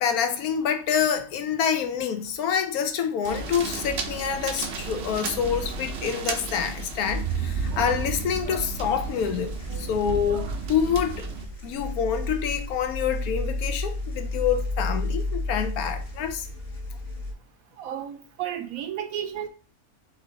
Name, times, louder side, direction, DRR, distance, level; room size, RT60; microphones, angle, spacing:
voice 1, 0.0-11.3 11.6-16.4, left 7 dB, 75° left, 1.1 m, -27 dB
sound 1, 3.2-11.5, right 5 dB, 60° right, 0.7 m, -33 dB
sound 2, 5.4-17.3, left 2 dB, 30° left, 0.9 m, -34 dB
voice 2, 17.8-19.5, right 10 dB, 75° right, 1.0 m, -32 dB
4.5 x 2.7 x 3.8 m
omnidirectional pair, 1.6 m